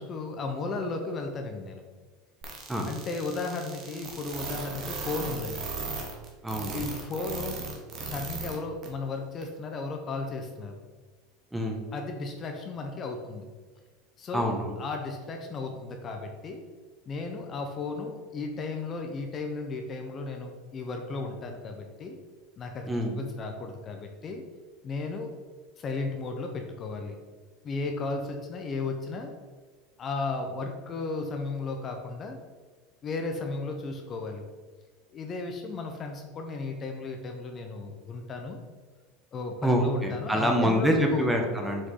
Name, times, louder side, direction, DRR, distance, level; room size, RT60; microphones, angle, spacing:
voice 1, 0.0-1.8 2.9-5.7 6.7-7.6 8.0-10.8 11.9-13.5 14.2-16.6 17.1-22.2 22.6-24.4 24.8-25.3 25.8-27.2 27.6-29.3 30.0-32.4 33.0-34.4 35.1-38.6 39.3-41.3, left 3 dB, 35° left, 4 dB, 0.9 m, -35 dB
sound 1, 2.4-8.6 8.8-8.9 9.4-9.5, right 4 dB, 40° right, 1.6 m, -36 dB
voice 2, 6.4-6.9 11.5-11.8 14.3-14.7 22.9-23.2 39.6-41.9, equal, 10° right, 2 dB, 1.1 m, -26 dB
6.4 x 4.8 x 3.9 m, 1.4 s
supercardioid pair, 115°, 0 cm